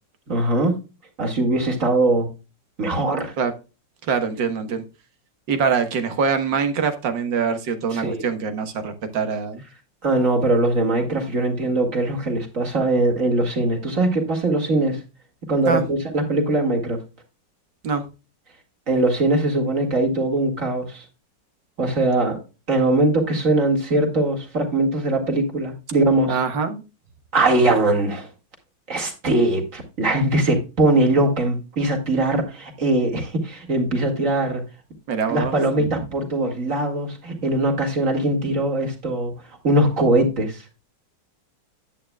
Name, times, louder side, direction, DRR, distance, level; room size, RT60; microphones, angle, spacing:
voice 1, 0.3-0.8 1.2-2.3 2.8-3.3 7.9-8.2 10.0-15.0 15.5-17.0 18.9-21.0 21.8-22.4 22.7-26.4 27.3-28.3 28.9-34.6 35.3-39.3 39.6-40.6, right 2 dB, 45° right, 2.4 m, -21 dB
voice 2, 4.1-4.8 5.5-9.6 15.7-15.8 17.8-18.0 26.3-26.8 35.1-35.5 35.8-35.9, right 6 dB, 90° right, 2.0 m, -24 dB
11.0 x 8.7 x 2.3 m
omnidirectional pair, 1.9 m